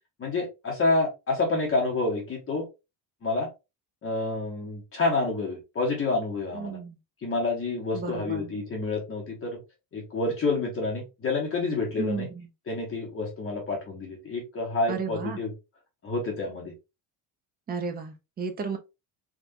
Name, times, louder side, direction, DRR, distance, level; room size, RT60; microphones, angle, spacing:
voice 1, 0.2-2.7 3.2-3.5 4.0-6.8 7.2-9.6 9.9-12.3 12.7-15.5 16.0-16.7, left 3 dB, 30° left, 0.9 m, -28 dB
voice 2, 6.5-7.0 7.9-8.5 12.0-12.4 14.9-15.4 17.7-18.8, right 5 dB, 20° right, 0.5 m, -33 dB
3.7 x 2.3 x 2.5 m
cardioid pair, 150°, 46 cm